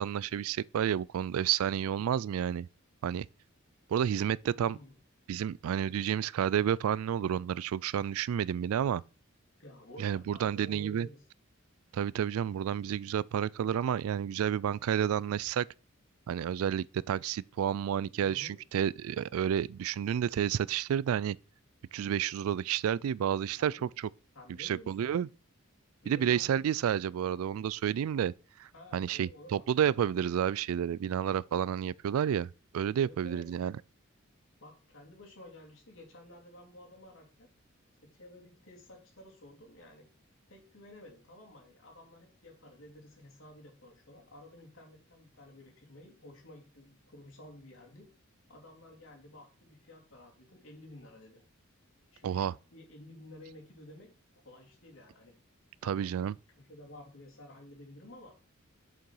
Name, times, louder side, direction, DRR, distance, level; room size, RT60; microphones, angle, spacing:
voice 1, 0.0-2.7 3.0-3.3 3.9-4.8 5.3-9.0 10.0-11.1 11.9-15.7 16.3-21.4 21.9-23.9 24.6-25.3 26.1-28.3 28.6-33.7 52.2-52.5 55.8-56.3, right 9 dB, 80° right, 0.3 m, -30 dB
voice 2, 4.5-4.9 9.6-11.2 18.1-18.6 23.6-23.9 24.3-25.1 26.0-26.7 28.7-29.6 32.9-33.4 34.6-37.5 38.0-40.1 40.5-48.1 48.5-51.4 52.1-55.4 55.8-56.3 56.6-58.4, left 1 dB, 65° left, 3.0 m, -52 dB
6.8 x 6.4 x 4.6 m
head